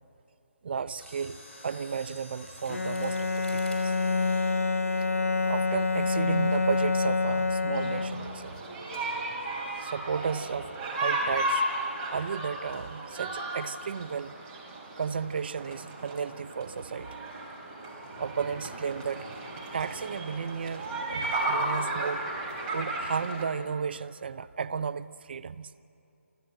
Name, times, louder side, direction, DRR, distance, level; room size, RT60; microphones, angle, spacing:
voice 1, 0.6-3.9 5.5-8.6 9.8-11.6 12.1-14.3 15.0-17.2 18.2-19.3 19.7-22.2 22.7-25.7, right 6 dB, 45° right, 13 dB, 0.6 m, -34 dB
Mechanisms, 0.9-5.9 6.5-6.7 7.4-7.7 8.0-8.1, left 1 dB, 10° left, 3.6 m, -49 dB
Bowed string instrument, 2.7-8.5, left 4 dB, 80° left, 0.7 m, -27 dB
sound 1, 7.7-23.4, right 1 dB, 20° right, 3.1 m, -34 dB
28.0 x 12.0 x 7.9 m, 2.7 s
figure-of-eight pair, 150°, 8 cm